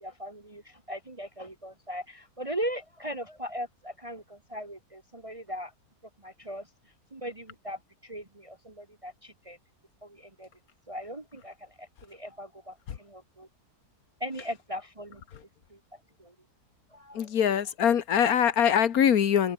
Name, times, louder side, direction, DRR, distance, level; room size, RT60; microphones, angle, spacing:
voice 1, 0.0-5.7 6.2-6.7 7.1-9.6 10.0-10.5 10.9-13.5 14.2-15.2 15.7-16.3 16.9-17.3, equal, 20° right, 1.4 m, -39 dB
voice 2, 17.1-19.5, left 8 dB, 65° left, 1.6 m, -23 dB
omnidirectional pair, 1.7 m